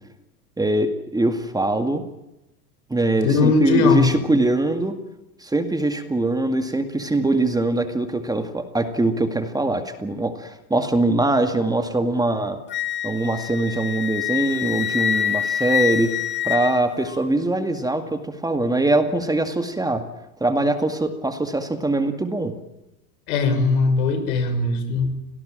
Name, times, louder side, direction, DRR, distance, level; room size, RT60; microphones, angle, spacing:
voice 1, 0.6-2.0 2.9-5.0 5.4-12.6 13.0-20.1 20.4-22.5, right 2 dB, 10° right, 8 dB, 2.1 m, -22 dB
voice 2, 3.2-4.2 23.3-25.1, left 4 dB, 75° left, 9 dB, 6.4 m, -19 dB
Wind instrument woodwind instrument, 12.7-17.3, left 10 dB, 25° left, 1.7 m, -25 dB
25.5 x 18.5 x 8.9 m, 0.93 s
hypercardioid pair, 110°, 44 cm